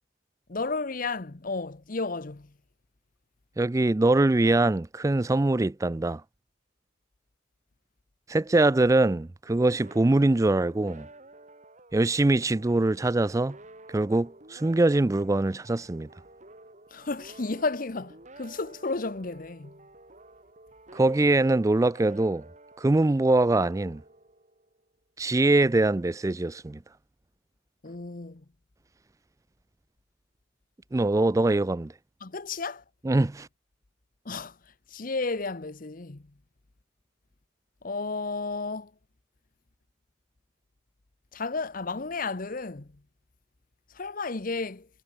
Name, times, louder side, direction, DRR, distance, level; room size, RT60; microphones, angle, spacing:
voice 1, 0.5-2.5 16.9-19.7 27.8-28.4 32.2-32.8 34.2-34.6 34.9-36.2 37.8-38.9 41.3-42.9 43.9-44.9, left 3 dB, 45° left, 0.9 m, -32 dB
voice 2, 3.6-6.2 8.3-11.1 11.9-13.6 13.9-16.1 20.9-22.4 22.8-24.0 25.2-26.8 30.9-31.9 33.0-33.5, right 2 dB, 15° right, 0.3 m, -23 dB
sound 1, 9.5-24.8, right 2 dB, 35° right, 3.7 m, -51 dB
head